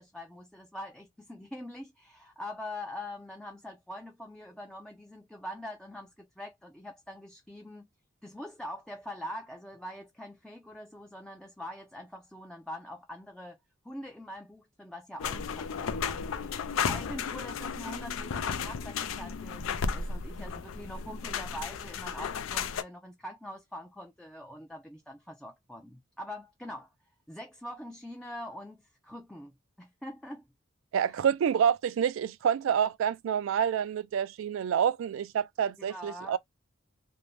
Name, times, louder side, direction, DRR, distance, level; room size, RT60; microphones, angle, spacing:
voice 1, 0.0-7.9 8.2-13.6 13.8-26.9 27.3-29.5 29.8-30.4 31.0-31.2 35.8-36.4, left 1 dB, 5° left, 0.3 m, -43 dB
sound 1, 15.2-22.8, left 6 dB, 85° left, 0.4 m, -34 dB
voice 2, 30.9-36.4, right 8 dB, 80° right, 0.3 m, -28 dB
2.6 x 2.1 x 3.1 m
head